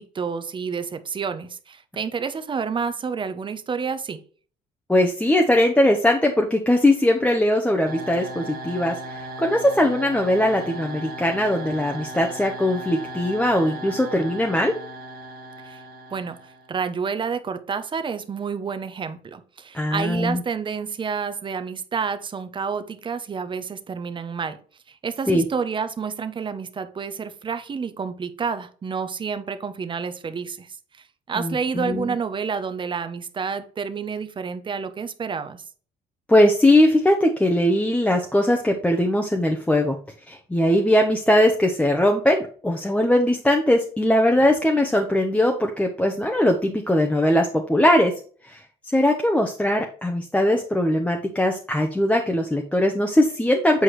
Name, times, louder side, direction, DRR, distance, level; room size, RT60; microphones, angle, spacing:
voice 1, 0.0-4.2 15.6-15.8 16.1-16.4 16.7-24.6 24.9-30.7 31.3-35.6, right 6 dB, 30° right, 10 dB, 0.9 m, -29 dB
voice 2, 4.9-14.8 19.7-20.4 25.3-25.4 31.3-32.1 36.3-40.0 40.3-48.1 48.4-53.8, left 1 dB, 5° left, 2 dB, 0.9 m, -20 dB
sound 1, 7.9-16.8, right 1 dB, 60° right, 1.3 m, -37 dB
8.1 x 4.7 x 3.2 m, 0.42 s
cardioid pair, 110°, 17 cm